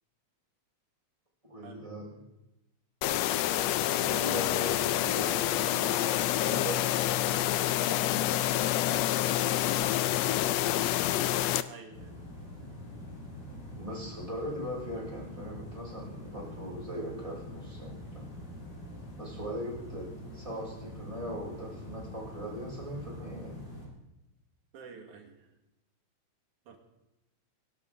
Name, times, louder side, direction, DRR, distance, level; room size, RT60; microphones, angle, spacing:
voice 1, 1.4-2.1 3.9-9.9 13.8-18.3 19.2-23.6, equal, 10° right, -4 dB, 5.0 m, -40 dB
sound 1, 3.0-11.6, left 13 dB, 75° left, 1.6 m, -28 dB
voice 2, 11.7-12.1 24.7-25.5 26.7-26.8, right 5 dB, 85° right, 3 dB, 3.3 m, -49 dB
sound 2, 11.9-23.9, equal, 50° left, 5.2 m, -44 dB
22.0 x 11.5 x 3.8 m, 0.96 s
omnidirectional pair, 3.3 m